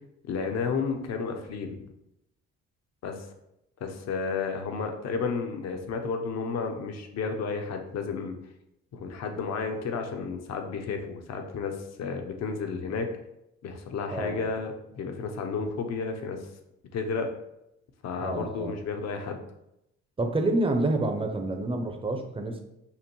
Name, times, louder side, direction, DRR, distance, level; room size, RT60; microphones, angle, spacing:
voice 1, 0.3-1.8 3.0-3.3 3.8-8.4 8.9-13.1 13.6-16.5 16.9-17.3 18.0-19.4, left 5 dB, 60° left, 5 dB, 0.7 m, -32 dB
voice 2, 14.1-14.4 18.2-18.7 20.2-22.6, right 2 dB, 20° right, 5 dB, 0.6 m, -28 dB
5.6 x 2.1 x 3.0 m, 0.84 s
cardioid pair, 95°, 30 cm